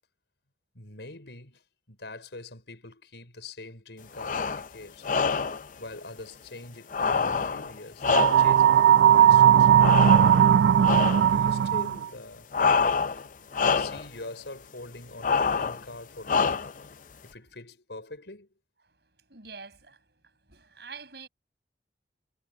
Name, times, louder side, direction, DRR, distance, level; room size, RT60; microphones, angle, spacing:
voice 1, 0.7-5.1 5.8-9.9 11.2-12.5 13.7-16.7 17.2-18.5, left 2 dB, 80° left, 5.1 m, -44 dB
sound 1, 4.1-4.7 5.0-5.7 6.9-8.7 9.8-10.5 10.8-11.3 12.5-13.3 13.5-14.1 15.2-15.8 16.3-16.9, left 5 dB, 45° left, 0.5 m, -26 dB
sound 2, 8.1-12.0, right 9 dB, 80° right, 0.3 m, -18 dB
voice 2, 13.4-13.8 19.3-20.0 20.5-21.3, right 5 dB, 65° right, 7.1 m, -46 dB
head